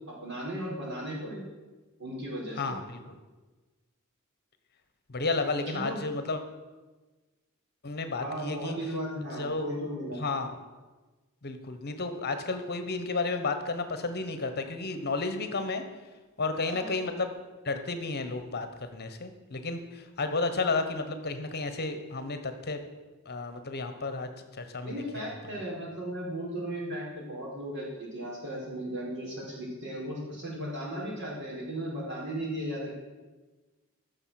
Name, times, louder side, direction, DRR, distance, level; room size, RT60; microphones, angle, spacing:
voice 1, 0.1-1.4 2.0-2.7 5.7-6.0 8.2-10.2 16.6-16.9 20.2-20.3 24.8-32.9, right 1 dB, 55° right, -4 dB, 4.8 m, -36 dB
voice 2, 2.6-3.2 5.1-6.4 7.8-8.8 9.4-9.7 10.2-10.6 11.4-15.8 16.4-17.4 17.6-22.8 23.2-24.3 24.6-25.4, left 3 dB, 50° left, 8 dB, 1.2 m, -32 dB
14.5 x 6.8 x 7.7 m, 1.2 s
head